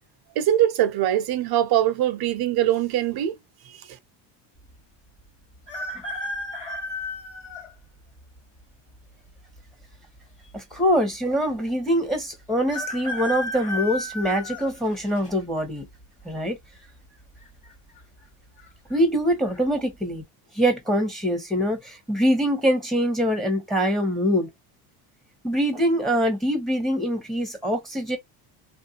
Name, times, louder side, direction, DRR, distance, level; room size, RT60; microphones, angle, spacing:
voice 1, 0.4-3.4, right 12 dB, 55° right, 0.8 m, -22 dB
sound 1, 5.7-7.7 8.4-8.5 9.6-10.2 10.5-10.6 10.8-10.9 12.7-15.3 15.8-16.2 17.4-17.7 18.0-18.1 18.6-19.0 19.4-19.6, left 1 dB, 15° left, 1.5 m, -33 dB
voice 2, 10.5-15.8 16.2-16.6 18.9-20.2 20.5-24.5 25.4-28.2, equal, ahead, 1.1 m, -24 dB
3.2 x 2.5 x 2.8 m
cardioid pair, 125°, 44 cm